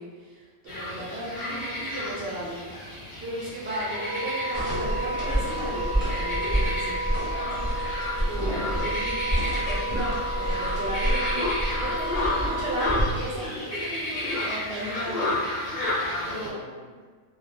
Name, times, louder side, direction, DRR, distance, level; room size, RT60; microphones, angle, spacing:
voice 1, 0.0-2.7 3.2-7.0 8.3-11.4 11.8-15.5 16.3-16.6, right 1 dB, 55° right, -7 dB, 0.7 m, -35 dB
sound 1, 0.7-16.5, left 1 dB, 35° left, 0.6 m, -32 dB
voice 2, 1.0-1.3 7.2-7.7 12.4-12.6 16.1-17.1, right 2 dB, 80° right, -3 dB, 1.1 m, -43 dB
Wind instrument woodwind instrument, 3.8-12.8, right 1 dB, 65° left, 0.8 m, -32 dB
sound 2, 4.5-13.1, equal, 10° right, 0.7 m, -29 dB
2.4 x 2.2 x 3.3 m, 1.5 s
omnidirectional pair, 1.4 m